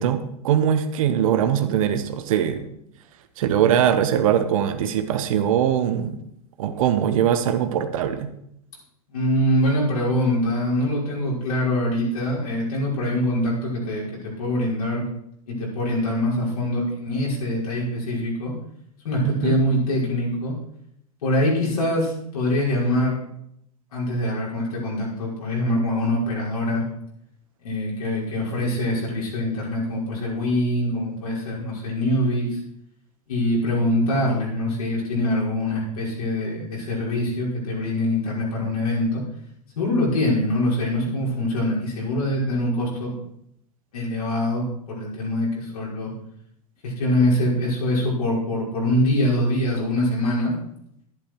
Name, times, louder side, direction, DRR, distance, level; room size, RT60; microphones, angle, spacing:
voice 1, 0.0-2.7 3.4-6.2 6.6-8.3 19.2-19.6, right 9 dB, 65° right, 8 dB, 1.4 m, -21 dB
voice 2, 9.1-15.1 15.5-18.5 19.0-20.5 21.2-23.2 23.9-26.8 27.6-32.6 33.3-39.2 39.8-43.1 43.9-46.1 46.8-50.5, left 1 dB, 75° left, -4 dB, 5.9 m, -24 dB
11.5 x 11.0 x 4.7 m, 0.74 s
hypercardioid pair, 95°, 19 cm